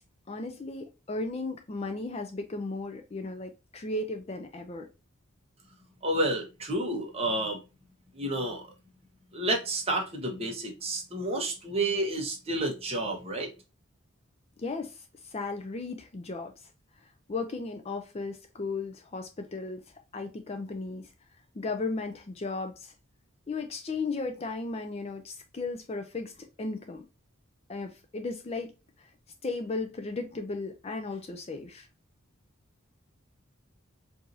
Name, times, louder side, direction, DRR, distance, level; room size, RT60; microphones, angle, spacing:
voice 1, 0.3-4.9 14.6-15.0 15.3-16.5 17.3-19.8 20.1-21.1 21.6-22.9 23.5-26.3 26.6-27.0 27.7-28.7 29.4-31.9, left 3 dB, 30° left, 0.4 m, -35 dB
voice 2, 6.0-7.6 8.1-8.6 9.3-13.5, right 1 dB, 30° right, 1.1 m, -30 dB
4.7 x 2.7 x 2.6 m
head